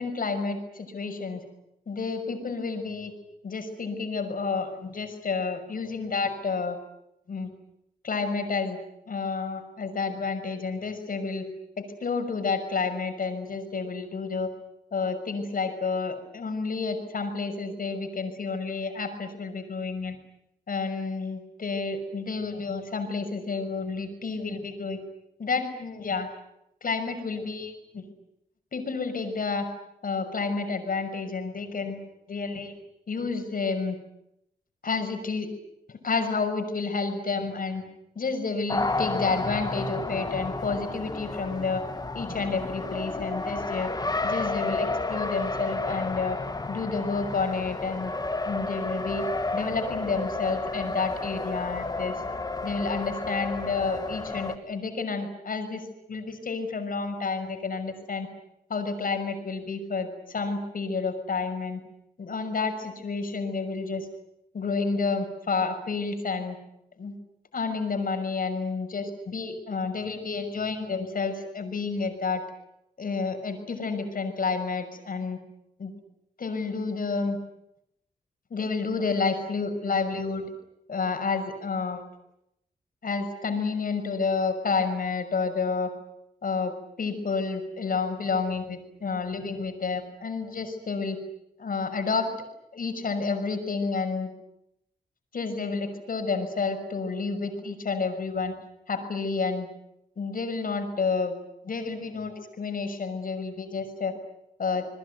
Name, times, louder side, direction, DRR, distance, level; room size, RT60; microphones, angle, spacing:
voice 1, 0.0-1.4 1.9-3.1 3.4-6.8 7.3-7.5 8.0-8.8 9.1-11.4 11.8-14.5 14.9-20.2 20.7-25.0 25.4-26.3 26.8-28.1 28.7-29.7 30.0-32.0 32.3-32.7 33.1-34.0 34.8-35.5 35.9-37.8 38.2-41.8 42.1-43.9 44.2-46.4 46.7-48.1 48.5-49.3 49.5-52.2 52.6-55.8 56.1-58.3 58.7-61.8 62.2-64.1 64.5-66.6 67.0-67.1 67.5-72.4 73.0-75.4 75.8-75.9 76.4-77.4 78.5-80.5 80.9-82.0 83.0-85.9 86.4-91.2 91.6-92.3 92.7-94.3 95.3-98.5 98.9-99.7 100.2-101.3 101.6-104.1 104.6-104.9, left 4 dB, 60° left, 6 dB, 6.1 m, -30 dB
Race car auto racing, 38.7-54.6, left 2 dB, 25° left, 1.9 m, -31 dB
28.0 x 21.5 x 9.4 m, 0.81 s
cardioid pair, 90°, 16 cm